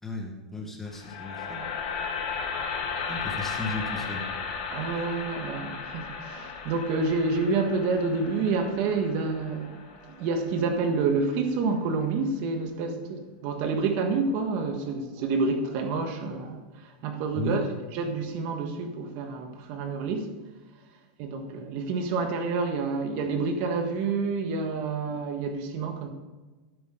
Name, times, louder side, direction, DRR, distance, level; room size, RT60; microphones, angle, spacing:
voice 1, 0.0-1.8 3.1-4.3 17.3-17.6, left 3 dB, 10° left, 1 dB, 1.6 m, -35 dB
sound 1, 0.9-11.0, left 5 dB, 60° left, 2.3 m, -35 dB
voice 2, 4.7-17.7 17.9-20.3 21.2-26.1, right 4 dB, 45° right, 5 dB, 1.6 m, -28 dB
12.0 x 8.5 x 3.9 m, 1.2 s
supercardioid pair, 150°, 4 cm